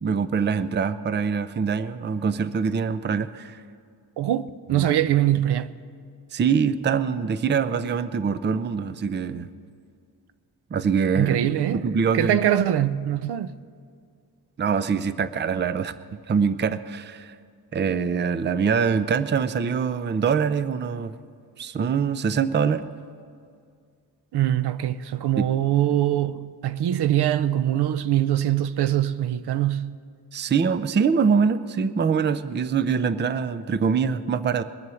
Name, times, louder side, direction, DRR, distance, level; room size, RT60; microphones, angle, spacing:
voice 1, 0.0-3.6 4.7-4.9 6.3-9.5 10.7-11.4 11.7-12.4 14.6-17.3 17.7-21.1 21.6-22.9 25.4-25.5 30.3-34.6, right 6 dB, 25° right, 0.5 m, -24 dB
voice 2, 4.2-5.7 11.2-11.9 12.1-13.6 24.3-30.0, right 11 dB, 70° right, 0.6 m, -23 dB
21.5 x 7.8 x 7.0 m
wide cardioid pair, 120°, 41 cm